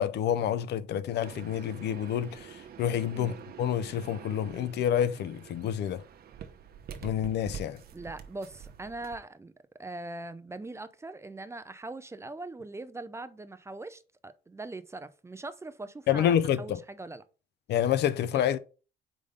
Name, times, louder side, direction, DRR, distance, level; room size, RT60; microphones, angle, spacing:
voice 1, 0.0-6.0 7.0-7.8 16.1-16.8 17.7-18.6, left 10 dB, 70° left, 0.5 m, -28 dB
sound 1, 1.2-9.2, right 8 dB, 60° right, 0.9 m, -46 dB
voice 2, 7.6-9.5 9.8-17.2 18.3-18.5, right 2 dB, 15° right, 0.5 m, -41 dB
5.0 x 3.7 x 5.2 m
cardioid pair, 110°, 18 cm